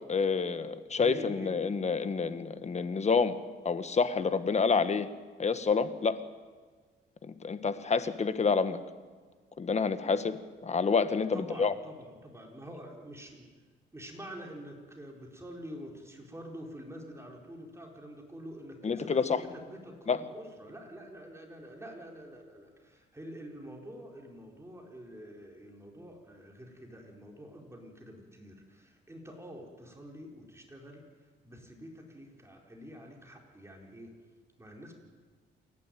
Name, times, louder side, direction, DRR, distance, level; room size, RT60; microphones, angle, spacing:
voice 1, 0.1-3.4 3.6-5.1 5.4-6.2 7.3-8.8 9.6-11.7 18.8-19.4 20.1-20.2, left 5 dB, 35° left, 11 dB, 1.4 m, -28 dB
voice 2, 0.9-1.6 11.3-13.5 13.9-34.1 34.6-34.9, equal, 15° right, 0 dB, 4.4 m, -47 dB
28.5 x 12.0 x 9.3 m, 1.5 s
cardioid pair, 90°, 20 cm